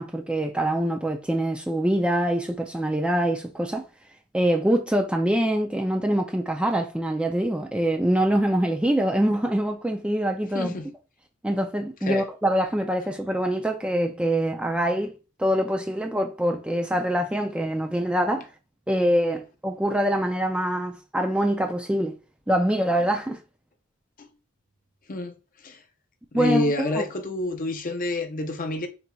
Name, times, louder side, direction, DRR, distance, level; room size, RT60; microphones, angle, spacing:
voice 1, 0.0-3.9 4.3-10.7 11.4-15.1 15.4-18.5 18.9-22.2 22.5-23.4 26.3-27.1, right 1 dB, 5° right, 0.3 m, -24 dB
voice 2, 10.5-10.9 12.1-12.2 24.2-24.3 25.1-25.3 25.6-25.8 26.3-28.9, left 2 dB, 40° left, 0.6 m, -28 dB
4.3 x 3.9 x 2.3 m
head